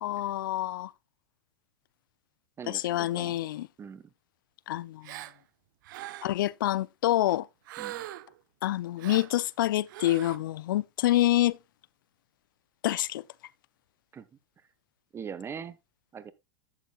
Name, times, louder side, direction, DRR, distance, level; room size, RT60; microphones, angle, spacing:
voice 1, 0.0-0.9 2.7-3.7 4.7-5.1 6.2-7.5 8.6-11.6 12.8-13.2, left 14 dB, 70° left, 0.5 m, -27 dB
voice 2, 2.6-3.4 3.8-4.1 7.8-8.0 14.1-14.3 15.1-15.8 16.1-16.3, right 7 dB, 20° right, 1.0 m, -41 dB
Gasp, 5.0-5.4 5.8-6.4 7.7-8.4 9.0-9.3 9.9-10.4, right 15 dB, 65° right, 0.6 m, -41 dB
11.5 x 8.2 x 2.3 m
hypercardioid pair, 105°, 11 cm